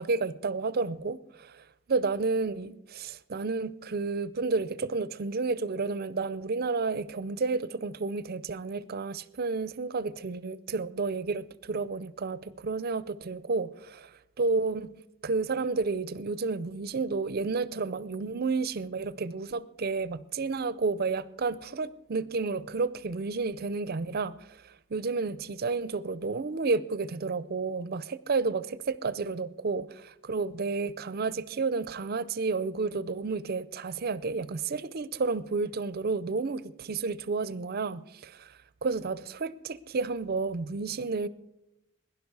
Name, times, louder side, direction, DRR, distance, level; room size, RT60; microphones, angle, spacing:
voice 1, 0.0-14.9 15.2-41.3, right 4 dB, 45° right, 0.5 m, -31 dB
17.0 x 11.0 x 4.7 m
head